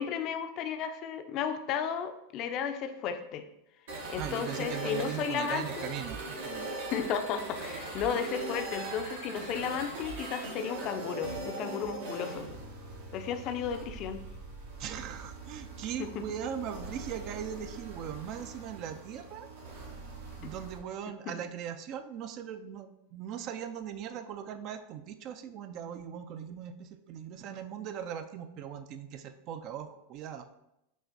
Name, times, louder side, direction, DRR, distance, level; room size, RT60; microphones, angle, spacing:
voice 1, 0.0-3.4 4.1-5.9 6.9-12.5 13.1-14.2 16.0-16.2 20.4-20.5, left 7 dB, 45° left, 8 dB, 0.4 m, -34 dB
sound 1, 3.9-20.8, right 2 dB, 70° right, 1.0 m, -41 dB
voice 2, 4.2-6.7 14.8-19.5 20.4-30.5, right 9 dB, 45° right, 9 dB, 0.3 m, -39 dB
6.1 x 2.4 x 2.7 m, 0.85 s
hypercardioid pair, 105°, 0 cm